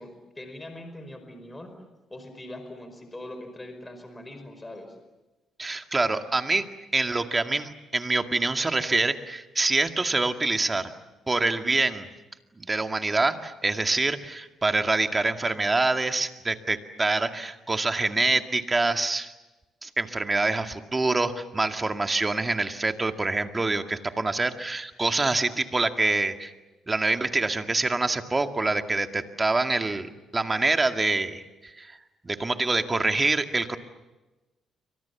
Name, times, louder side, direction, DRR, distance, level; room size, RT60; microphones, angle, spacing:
voice 1, 0.0-1.7 2.1-5.0, left 1 dB, 15° left, 7 dB, 5.1 m, -42 dB
voice 2, 5.6-6.6 6.9-10.9 11.3-12.1 12.6-19.3 19.8-26.5 26.9-31.9 32.2-33.8, right 3 dB, 25° right, 6 dB, 2.1 m, -26 dB
30.0 x 25.0 x 7.2 m, 1.1 s
cardioid pair, 90°, 0 cm